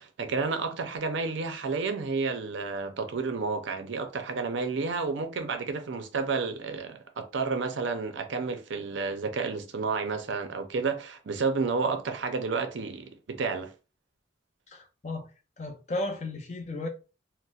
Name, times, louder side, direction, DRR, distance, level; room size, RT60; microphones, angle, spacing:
voice 1, 0.0-13.7, right 4 dB, 75° right, 0.5 m, -31 dB
voice 2, 14.7-15.3 15.6-16.9, left 2 dB, 35° left, 0.5 m, -34 dB
4.0 x 2.1 x 2.3 m
head